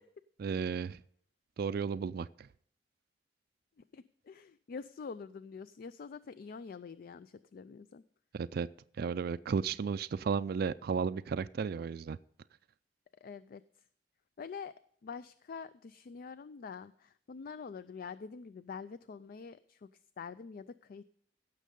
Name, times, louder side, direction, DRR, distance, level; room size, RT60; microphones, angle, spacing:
voice 1, 0.4-1.0 1.6-2.5 8.3-8.7 9.0-12.2, right 6 dB, 55° right, 14 dB, 0.4 m, -34 dB
voice 2, 3.9-8.0 13.2-13.6 14.4-14.7 15.0-19.9 20.2-21.0, left 5 dB, 55° left, 15 dB, 0.4 m, -46 dB
16.5 x 6.5 x 5.2 m, 0.63 s
head